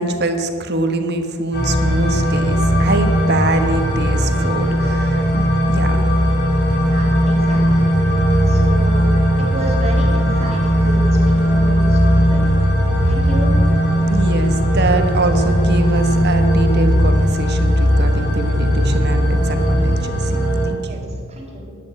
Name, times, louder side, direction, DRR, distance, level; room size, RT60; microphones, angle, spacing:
voice 1, 0.0-6.0 13.0-13.1 14.1-20.4 20.6-21.0, right 2 dB, 50° right, 7 dB, 1.3 m, -23 dB
sound 1, 1.5-20.6, equal, 50° left, 3.7 m, -17 dB
voice 2, 6.9-7.8 8.4-9.0 9.4-12.5 13.0-13.5 20.8-21.7, right 1 dB, 30° right, 0 dB, 3.1 m, -31 dB
12.0 x 9.9 x 9.1 m, 2.2 s
head